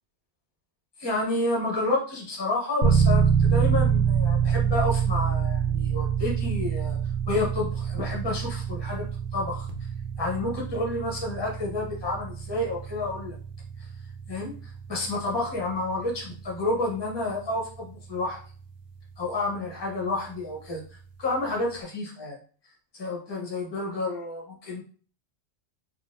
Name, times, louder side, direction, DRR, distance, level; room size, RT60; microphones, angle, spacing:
voice 1, 1.0-7.0 7.3-9.0 9.3-9.7 10.2-13.4 14.3-18.4 19.2-20.8 21.2-22.4 22.9-24.8, left 2 dB, 25° left, -2 dB, 0.9 m, -30 dB
sound 1, 2.8-19.6, right 7 dB, 70° right, 0.8 m, -27 dB
3.8 x 2.3 x 2.5 m, 0.41 s
omnidirectional pair, 1.2 m